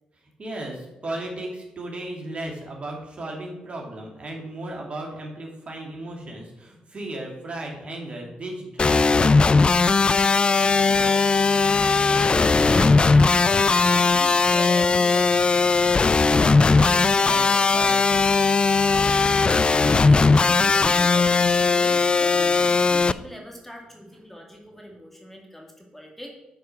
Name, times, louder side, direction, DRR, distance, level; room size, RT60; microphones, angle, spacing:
voice 1, 0.4-9.5 16.7-17.9, right 1 dB, 40° right, -1 dB, 2.6 m, -35 dB
sound 1, 8.8-23.1, left 4 dB, 35° left, 0.3 m, -18 dB
voice 2, 10.4-16.0 18.7-19.2 19.5-26.3, equal, 5° left, 0 dB, 2.2 m, -41 dB
8.9 x 4.7 x 6.1 m, 0.97 s
supercardioid pair, 55°, 3 cm